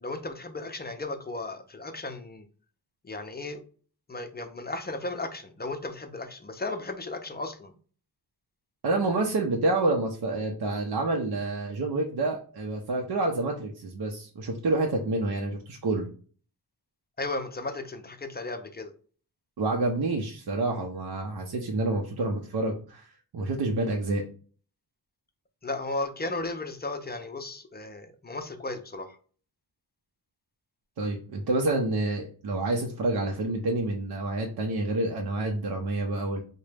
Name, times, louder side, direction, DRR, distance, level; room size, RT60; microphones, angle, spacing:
voice 1, 0.0-2.4 3.0-3.6 4.1-7.7 17.2-18.9 25.6-29.2, left 2 dB, 25° left, 0.5 m, -35 dB
voice 2, 8.8-16.1 19.6-24.2 31.0-36.4, right 2 dB, 70° right, 0.6 m, -28 dB
3.8 x 2.2 x 3.3 m
wide cardioid pair, 130°, 39 cm